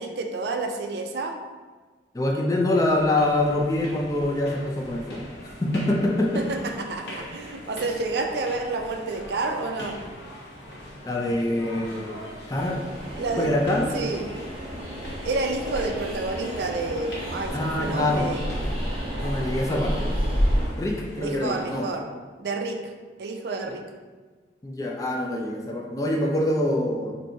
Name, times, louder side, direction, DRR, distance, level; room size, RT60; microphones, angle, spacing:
voice 1, 0.0-1.3 6.3-10.0 13.2-13.6 13.9-14.2 15.2-18.5 21.2-22.1 22.4-22.9 23.2-23.8, right 3 dB, 70° right, 4 dB, 0.4 m, -29 dB
voice 2, 2.1-5.3 5.6-6.4 11.0-12.2 12.5-12.8 13.4-13.9 17.5-18.3 19.2-20.1 20.8-21.9 24.6-27.2, left 1 dB, 20° left, 0 dB, 0.4 m, -25 dB
sound 1, 2.9-21.8, equal, 80° left, 1.0 m, -42 dB
Train, 12.5-20.7, equal, 35° right, 0.7 m, -30 dB
sound 2, 15.6-19.5, left 1 dB, ahead, 0.8 m, -46 dB
4.4 x 2.6 x 2.7 m, 1.4 s
head